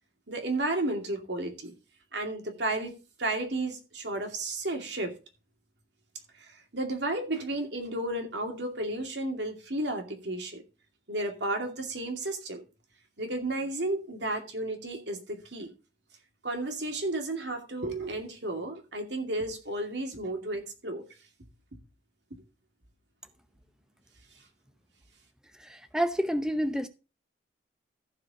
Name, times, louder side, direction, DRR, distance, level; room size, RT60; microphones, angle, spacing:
voice 1, 0.3-1.7 2.1-2.9 3.2-5.1 6.4-10.6 11.1-12.6 13.2-15.7 16.4-21.0, right 2 dB, 70° right, 2.4 m, -33 dB
voice 2, 25.6-26.9, equal, 5° right, 0.7 m, -29 dB
14.5 x 5.0 x 4.9 m
head